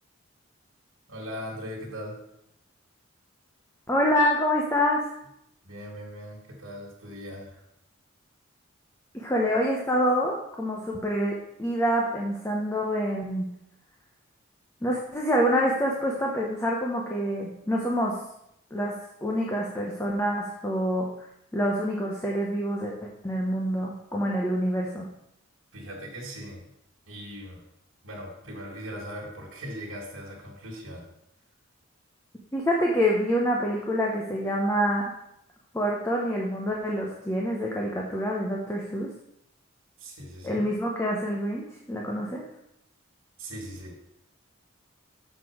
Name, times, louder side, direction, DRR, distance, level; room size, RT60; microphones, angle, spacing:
voice 1, 1.1-2.2 5.6-7.6 25.7-26.7 27.1-27.6 28.0-31.1 40.0-40.7 43.4-44.0, equal, 80° right, -4 dB, 1.9 m, -39 dB
voice 2, 3.9-5.0 9.1-13.5 14.8-18.2 18.7-18.9 19.2-21.1 21.5-25.1 32.5-35.1 35.7-39.1 40.4-42.4, equal, 10° left, -2 dB, 0.8 m, -26 dB
6.6 x 6.1 x 4.8 m, 0.79 s
head